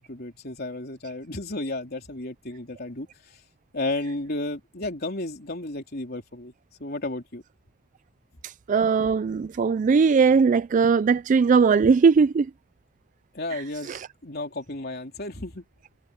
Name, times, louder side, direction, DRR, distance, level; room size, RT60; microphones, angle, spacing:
voice 1, 0.0-3.1 3.7-6.5 6.8-7.4 13.3-13.9 14.2-15.6, left 2 dB, 55° left, 3.6 m, -33 dB
voice 2, 8.7-12.5 13.9-14.0, right 5 dB, 40° right, 0.3 m, -19 dB
head